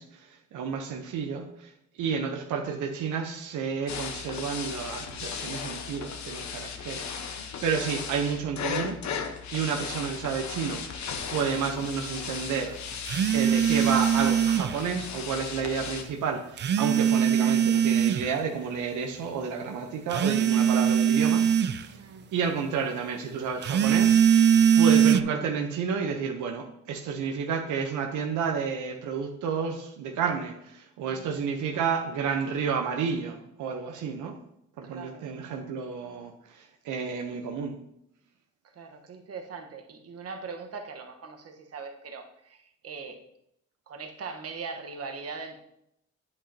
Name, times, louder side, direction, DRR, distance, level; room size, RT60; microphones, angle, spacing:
voice 1, 0.0-1.7 2.0-10.8 11.3-12.7 13.3-22.0 22.3-34.4 34.8-37.8, right 6 dB, 80° right, 3 dB, 0.9 m, -31 dB
sound 1, 3.9-16.0, left 6 dB, 65° left, 1.1 m, -36 dB
sound 2, 13.1-14.8 16.6-18.3 20.1-21.8 23.6-25.2, right 8 dB, 35° right, 0.4 m, -21 dB
voice 2, 31.0-31.4 34.8-35.3 38.7-43.2 43.9-45.6, right 4 dB, 50° right, 4 dB, 1.2 m, -41 dB
8.7 x 8.2 x 2.8 m, 0.76 s
cardioid pair, 90°, 30 cm